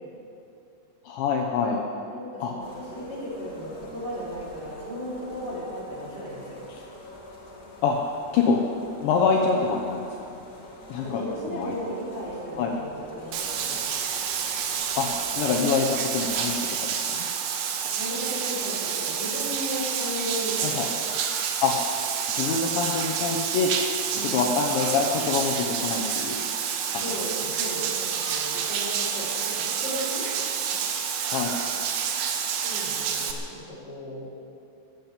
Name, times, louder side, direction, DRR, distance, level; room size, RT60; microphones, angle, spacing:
voice 1, 1.0-1.8 2.4-2.5 7.8-8.0 8.3-8.6 9.0-10.0 10.9-11.2 11.5-11.8 12.6-12.7 15.0-16.8 17.1-17.3 20.6-20.9 21.6-21.7 22.3-23.7 24.2-26.4 26.9-27.0 30.7-30.8 31.2-31.5, left 5 dB, 75° left, 0 dB, 3.0 m, -25 dB
voice 2, 2.1-6.6 11.0-13.9 17.9-20.9 24.1-24.4 26.8-30.3 32.6-34.3, equal, 25° right, -7 dB, 4.5 m, -35 dB
sound 1, 2.6-16.6, left 1 dB, 55° left, 0.9 m, -45 dB
Bathtub (filling or washing), 13.3-33.3, right 7 dB, 75° right, 2.2 m, -29 dB
14.0 x 12.0 x 8.7 m, 2.5 s
omnidirectional pair, 5.9 m